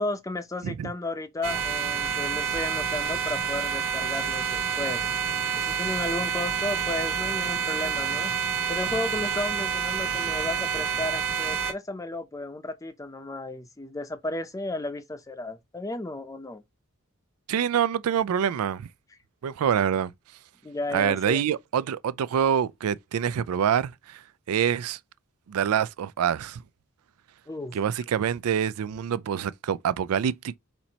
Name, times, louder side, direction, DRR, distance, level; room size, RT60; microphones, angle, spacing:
voice 1, 0.0-5.1 5.6-8.3 8.7-16.6 20.6-21.5 27.5-27.8, left 2 dB, 15° left, 0.5 m, -33 dB
sound 1, 1.4-11.7, right 6 dB, 65° right, 0.9 m, -28 dB
voice 2, 17.5-18.9 19.4-20.1 20.9-24.2 24.5-25.0 25.5-26.6 27.7-30.6, right 8 dB, 85° right, 0.4 m, -26 dB
4.4 x 4.2 x 2.8 m
head